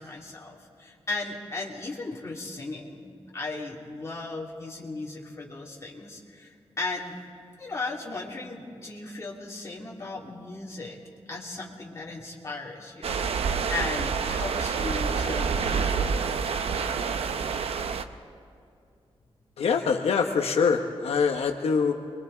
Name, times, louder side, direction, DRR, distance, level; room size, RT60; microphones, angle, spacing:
voice 1, 0.0-7.2 7.6-11.0 11.3-16.3, left 3 dB, 30° left, -3 dB, 2.8 m, -36 dB
sound 1, 13.0-18.0, right 6 dB, 75° right, 0.8 m, -27 dB
voice 2, 19.6-21.9, left 5 dB, 80° left, 3 dB, 1.1 m, -24 dB
29.5 x 22.5 x 4.0 m, 2.4 s
wide cardioid pair, 155°, 10 cm